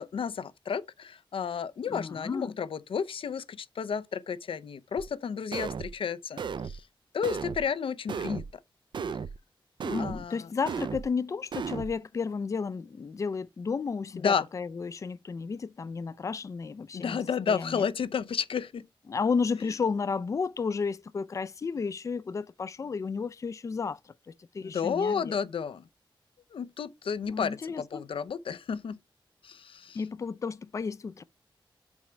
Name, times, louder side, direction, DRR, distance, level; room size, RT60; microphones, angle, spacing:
voice 1, 0.0-6.9 7.1-8.4 10.0-10.5 14.1-14.4 16.9-18.9 24.6-25.9 26.5-29.0 29.4-30.0, left 6 dB, 85° left, 0.6 m, -32 dB
voice 2, 1.9-2.5 9.8-17.2 17.5-17.8 19.1-25.4 27.3-28.0 29.9-31.2, left 5 dB, 35° left, 0.3 m, -32 dB
sound 1, 5.0-5.1 5.5-5.9 6.4-6.8 7.2-7.7 8.1-8.5 8.9-9.4 9.8-10.2 10.7-11.1 11.5-11.9, right 6 dB, 60° right, 0.4 m, -35 dB
7.2 x 4.4 x 4.9 m
wide cardioid pair, 170°, 9 cm